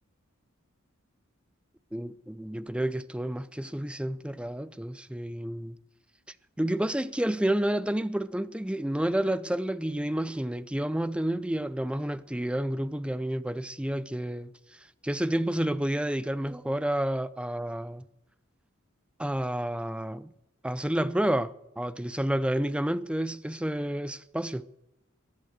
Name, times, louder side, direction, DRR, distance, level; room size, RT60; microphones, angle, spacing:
voice 1, 1.9-5.8 6.6-18.0 19.2-20.3 20.6-24.7, right 1 dB, 5° right, 0.5 m, -30 dB
22.0 x 7.5 x 6.4 m
head